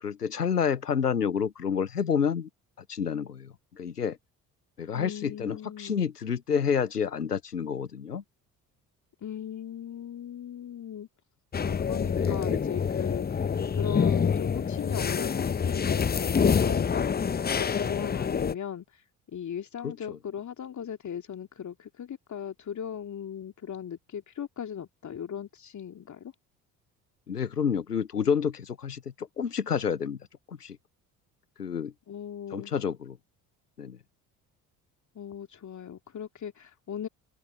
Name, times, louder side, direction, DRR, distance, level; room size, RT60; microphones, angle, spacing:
voice 1, 0.0-2.5 2.9-4.2 4.8-8.2 12.2-12.6 19.8-20.2 27.3-30.2 30.5-30.8 31.6-31.9 32.5-33.2 33.8-34.0, left 7 dB, 90° left, 0.8 m, -29 dB
voice 2, 4.9-6.0 9.2-11.1 11.6-13.5 13.8-19.0 19.3-26.3 32.1-32.7 35.1-37.1, left 8 dB, 40° left, 2.8 m, -38 dB
sound 1, 11.5-18.5, left 6 dB, 20° left, 0.9 m, -27 dB
open air
figure-of-eight pair, 50°, 45 cm